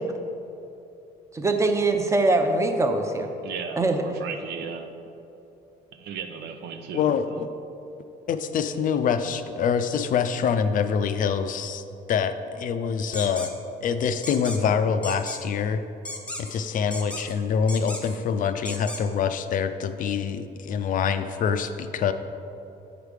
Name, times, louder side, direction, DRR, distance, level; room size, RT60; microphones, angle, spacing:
voice 1, 1.3-3.3 3.8-4.0, right 2 dB, 15° right, 5 dB, 0.7 m, -22 dB
voice 2, 3.4-4.9 5.9-7.4, right 6 dB, 80° right, 6 dB, 0.7 m, -36 dB
voice 3, 6.9-7.3 8.3-11.8 12.1-13.5 13.8-15.8 16.4-22.1, left 6 dB, 50° left, 10 dB, 0.4 m, -25 dB
sound 1, 13.1-13.5 14.2-14.6 15.0-15.4 16.1-16.6 16.9-17.3 17.7-18.2 18.7-19.0, left 1 dB, 5° left, 1.0 m, -35 dB
8.4 x 4.9 x 4.9 m, 2.8 s
cardioid pair, 110°, 17 cm